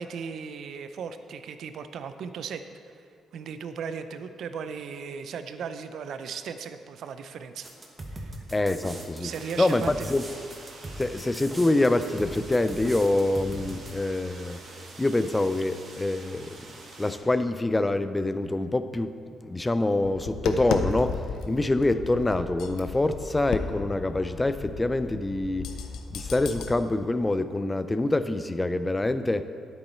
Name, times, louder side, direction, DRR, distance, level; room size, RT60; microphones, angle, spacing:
voice 1, 0.0-2.9 3.3-7.7 8.1-8.4 9.2-10.1, right 6 dB, 70° right, 10 dB, 0.5 m, -37 dB
sound 1, 7.6-13.9, right 1 dB, 25° right, 1.5 m, -40 dB
voice 2, 8.5-9.3 9.6-10.2 11.0-14.6 15.0-16.5 17.0-25.7 26.1-29.4, left 2 dB, 15° left, 11 dB, 0.5 m, -26 dB
sound 2, 9.2-17.2, right 2 dB, 55° right, 1.8 m, -46 dB
Tap, 20.0-26.7, left 5 dB, 80° left, 0.7 m, -34 dB
9.9 x 8.2 x 4.4 m, 2.3 s
cardioid pair, 90°, 0 cm